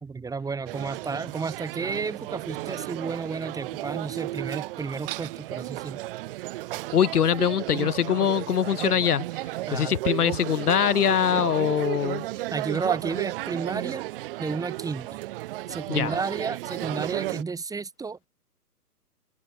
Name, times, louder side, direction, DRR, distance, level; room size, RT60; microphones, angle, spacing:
voice 1, 0.0-6.0 9.7-10.0 12.5-14.0 14.4-15.2 15.7-18.3, right 4 dB, 5° right, 3.9 m, -32 dB
sound 1, 0.7-17.4, right 17 dB, 35° right, 1.9 m, -34 dB
voice 2, 6.9-12.2 15.9-16.2, left 9 dB, 70° left, 1.0 m, -23 dB
figure-of-eight pair, 130°, 47 cm